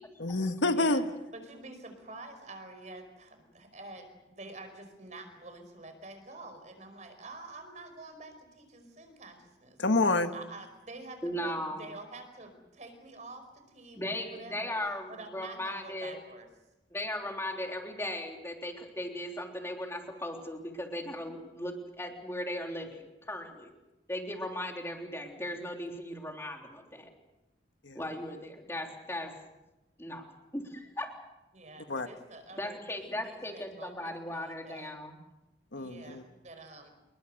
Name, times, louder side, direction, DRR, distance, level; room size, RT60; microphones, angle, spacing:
voice 1, 0.2-1.0 9.8-10.3 27.8-28.0 31.9-32.1 35.7-36.2, left 2 dB, 90° left, 8 dB, 1.6 m, -27 dB
voice 2, 0.7-1.0 1.3-9.8 10.3-14.7 15.1-16.5 31.5-34.9 35.8-36.9, right 2 dB, 40° right, 7 dB, 5.1 m, -48 dB
voice 3, 11.2-11.9 13.9-16.2 16.9-23.7 24.1-27.1 27.9-29.3 30.0-31.1 32.5-35.2, left 1 dB, 15° left, 2 dB, 3.5 m, -37 dB
28.5 x 21.5 x 6.7 m, 1.0 s
head